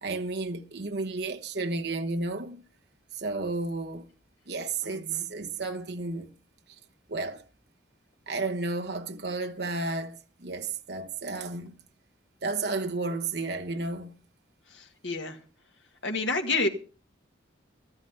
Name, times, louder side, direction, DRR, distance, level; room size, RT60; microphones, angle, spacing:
voice 1, 0.0-2.6 3.1-4.1 4.5-6.3 7.1-7.4 8.3-11.7 12.4-14.2, right 3 dB, 55° right, 1.1 m, -32 dB
voice 2, 4.8-5.2 14.7-15.4 16.0-16.7, left 3 dB, 75° left, 1.9 m, -29 dB
13.0 x 11.0 x 5.6 m
head